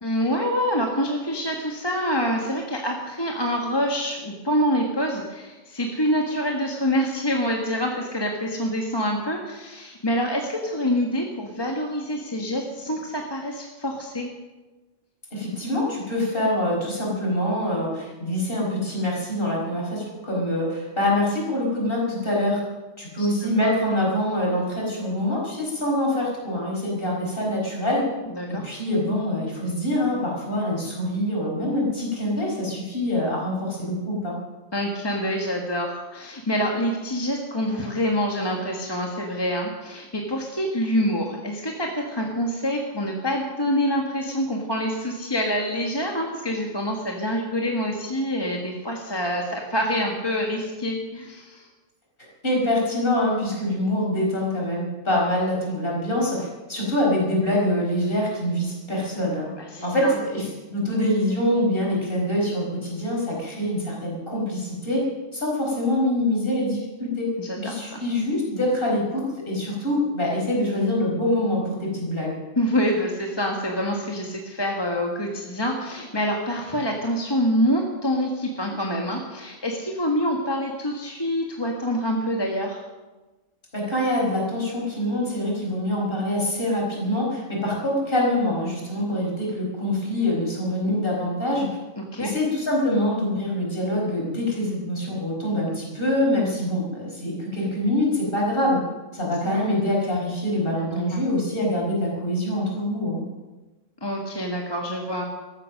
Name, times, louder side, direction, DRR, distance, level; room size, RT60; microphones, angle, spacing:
voice 1, 0.0-14.3 23.2-23.3 23.6-23.7 28.4-28.7 34.7-51.7 59.6-60.2 67.4-68.0 72.6-82.8 92.0-92.3 99.4-99.5 100.8-101.2 104.0-105.2, equal, 20° left, 0 dB, 1.5 m, -26 dB
voice 2, 15.3-22.6 23.0-28.1 28.5-34.4 52.4-59.5 59.8-65.1 65.3-67.3 67.6-69.2 69.5-72.3 83.7-91.7 92.2-98.8 99.1-103.2, left 1 dB, 45° left, -2 dB, 5.1 m, -25 dB
15.0 x 13.5 x 6.4 m, 1.2 s
omnidirectional pair, 1.3 m